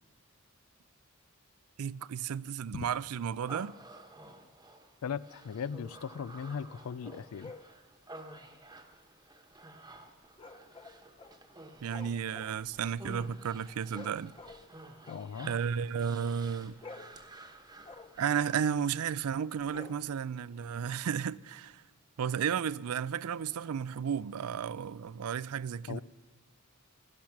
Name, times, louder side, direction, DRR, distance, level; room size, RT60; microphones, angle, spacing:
voice 1, 1.8-3.7 11.8-14.3 15.5-16.8 18.2-21.8 22.2-26.0, right 7 dB, 80° right, 0.4 m, -33 dB
Human voice, 3.5-18.6, right 1 dB, 20° right, 1.1 m, -52 dB
voice 2, 5.0-7.5 15.1-15.5 25.9-26.0, left 7 dB, 70° left, 0.4 m, -38 dB
sound 1, 7.4-7.7 10.4-11.5 11.7-14.7 15.0-16.3 16.6-18.7 19.6-20.4, left 3 dB, 25° left, 0.7 m, -51 dB
17.5 x 12.0 x 5.9 m
head